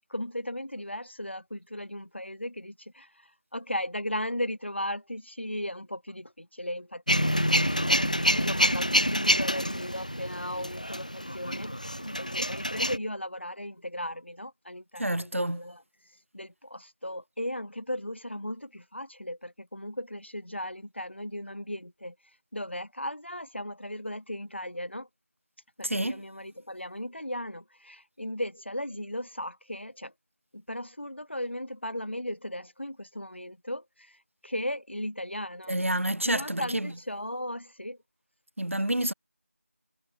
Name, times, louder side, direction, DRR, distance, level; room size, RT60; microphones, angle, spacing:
voice 1, 0.1-3.1 3.5-7.2 7.7-11.7 12.1-15.8 16.3-22.2 22.5-25.1 25.8-30.1 30.5-34.2 34.4-35.8 36.2-38.0, left 1 dB, 50° left, 5.7 m, -36 dB
Male speech man speaking / Vehicle / Engine starting, 7.1-13.0, equal, 30° left, 0.7 m, -27 dB
voice 2, 15.0-15.6 25.8-26.2 35.7-36.9 38.6-39.1, right 1 dB, 60° right, 0.7 m, -28 dB
figure-of-eight pair, 175°, 8 cm